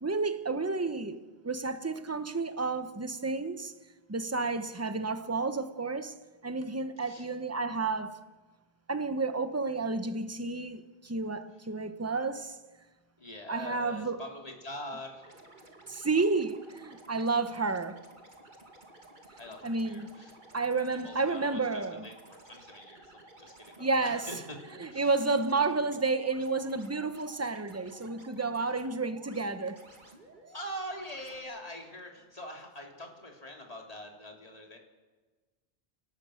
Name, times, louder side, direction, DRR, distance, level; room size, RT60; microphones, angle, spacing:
voice 1, 0.0-3.7 4.1-6.1 6.4-8.2 8.9-12.6 13.5-14.2 15.9-18.0 19.6-20.1 20.5-22.1 23.8-24.3 24.8-29.8, right 3 dB, 15° right, 1.0 m, -31 dB
voice 2, 7.0-7.3 13.2-15.4 19.4-20.4 20.9-24.6 24.9-25.2 30.5-34.8, equal, 35° left, 3.4 m, -44 dB
sound 1, 15.2-31.4, right 2 dB, 45° right, 2.6 m, -54 dB
29.5 x 19.0 x 6.5 m
omnidirectional pair, 1.1 m